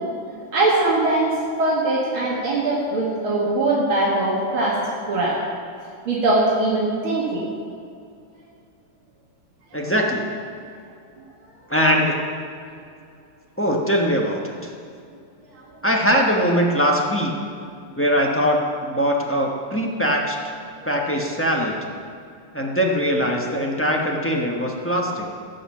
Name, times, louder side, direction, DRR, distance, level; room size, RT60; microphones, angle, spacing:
voice 1, 0.5-5.4 6.1-7.5, right 2 dB, 70° right, -5 dB, 2.6 m, -21 dB
voice 2, 9.7-10.2 11.7-12.2 13.6-14.7 15.8-17.3 18.0-20.4 20.8-21.8 22.5-25.3, equal, 10° left, -1 dB, 0.7 m, -21 dB
16.0 x 5.6 x 7.3 m, 2.4 s
omnidirectional pair, 2.4 m